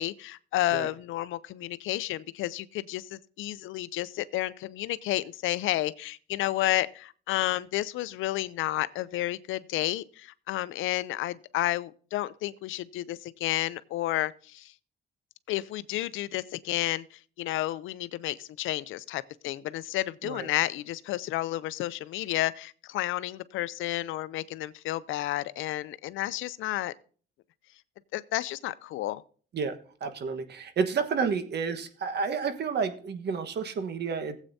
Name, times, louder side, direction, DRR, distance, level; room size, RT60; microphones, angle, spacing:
voice 1, 0.0-14.7 15.5-26.9 28.1-29.2, left 15 dB, 85° left, 0.5 m, -31 dB
voice 2, 30.0-34.4, right 5 dB, 55° right, 1.3 m, -30 dB
16.0 x 8.2 x 2.7 m
cardioid pair, 90°, 20 cm